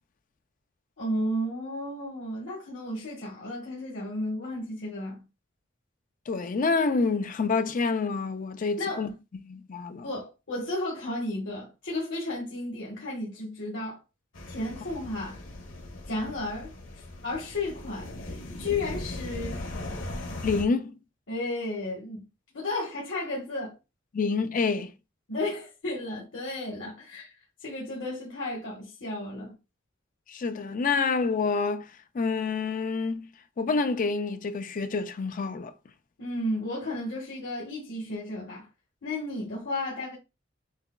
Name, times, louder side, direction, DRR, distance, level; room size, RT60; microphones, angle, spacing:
voice 1, 1.0-5.2 8.8-9.1 10.0-14.0 14.5-15.4 16.1-19.6 21.3-22.3 22.5-23.8 25.3-27.3 27.6-29.5 36.2-38.7 39.0-40.2, left 1 dB, 70° left, 1.3 m, -33 dB
voice 2, 6.3-9.1 9.4-10.1 20.4-20.9 24.1-24.9 30.3-33.3 33.6-35.7, left 4 dB, 40° left, 0.4 m, -27 dB
sound 1, 14.3-20.6, left 1 dB, 85° left, 1.1 m, -38 dB
6.6 x 2.3 x 2.3 m
head